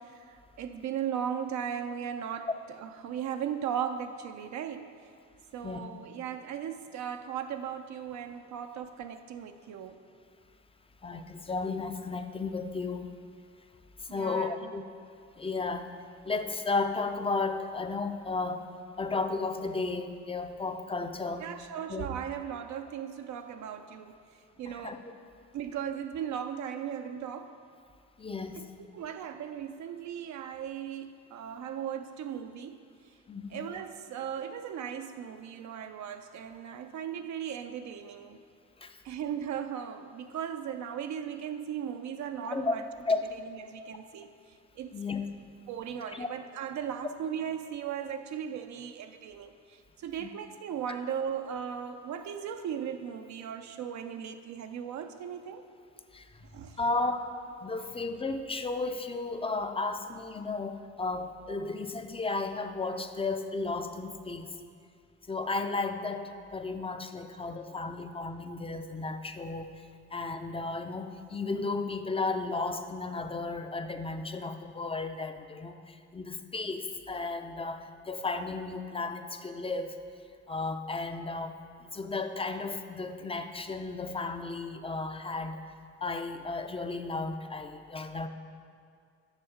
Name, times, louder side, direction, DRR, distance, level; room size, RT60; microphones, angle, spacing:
voice 1, 0.0-2.5 2.8-5.0 5.5-10.0 14.1-14.7 21.4-24.2 24.6-25.0 25.5-27.6 28.6-28.7 28.9-32.8 33.5-38.4 39.0-42.8 43.6-44.3 44.8-44.9 45.7-55.7 56.5-56.8 64.6-64.7 67.5-67.8 68.1-68.2 68.5-68.6 72.2-72.3, right 8 dB, 70° right, 7 dB, 0.5 m, -37 dB
voice 2, 11.0-13.2 14.0-14.8 15.4-15.9 16.2-18.7 19.0-21.5 21.9-22.1 24.7-25.1 28.2-28.7 33.3-33.7 38.8-39.0 42.5-43.2 44.9-45.3 46.0-46.3 50.2-50.3 56.1-56.5 56.8-57.3 57.6-64.6 65.3-69.7 70.1-80.0 80.5-81.5 81.9-85.6 86.0-88.3, left 3 dB, 20° left, 8 dB, 0.4 m, -34 dB
7.3 x 6.3 x 5.0 m, 2.3 s
cardioid pair, 90°, 30 cm